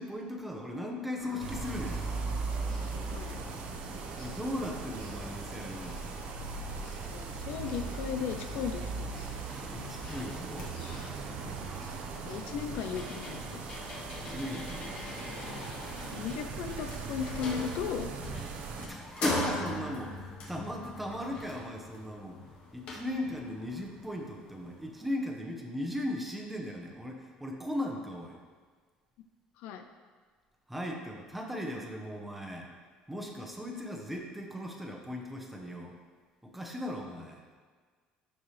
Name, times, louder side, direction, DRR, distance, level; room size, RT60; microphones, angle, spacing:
voice 1, 0.0-2.0 4.2-6.0 9.7-10.8 14.1-14.9 18.8-22.4 22.7-28.4 30.7-32.7 33.1-36.0 36.4-37.4, left 1 dB, 5° right, 0 dB, 1.0 m, -38 dB
sound 1, 1.2-15.6, left 1 dB, 30° left, 2.2 m, -48 dB
sound 2, 1.4-18.9, right 5 dB, 60° right, 0.8 m, -39 dB
voice 2, 3.1-3.4 7.1-9.2 11.6-11.8 12.2-13.6 16.1-18.1 29.6-29.8, left 7 dB, 75° left, 7 dB, 0.6 m, -36 dB
sound 3, 6.7-6.8 7.1-25.0, left 2 dB, 55° left, 1.8 m, -42 dB
12.5 x 4.7 x 3.3 m, 1.5 s
cardioid pair, 130°, 3 cm